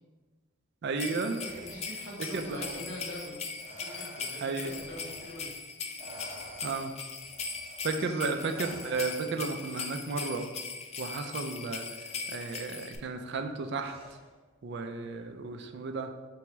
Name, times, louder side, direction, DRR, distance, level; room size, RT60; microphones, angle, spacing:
voice 1, 0.8-1.4 2.3-2.8 4.4-4.7 6.6-6.9 7.8-10.5 11.0-11.9 12.3-14.0 14.6-16.1, right 4 dB, 55° right, 6 dB, 0.4 m, -33 dB
sound 1, 1.0-13.0, left 5 dB, 30° left, 0.3 m, -40 dB
Respiratory sounds, 1.3-5.6 6.0-9.6 10.9-11.1 12.0-12.6 13.8-14.5, right 2 dB, 30° right, 0.8 m, -50 dB
voice 2, 1.4-5.5 7.9-8.2 14.9-15.2, equal, 85° left, -4 dB, 1.3 m, -44 dB
4.6 x 3.5 x 3.0 m, 1.3 s
head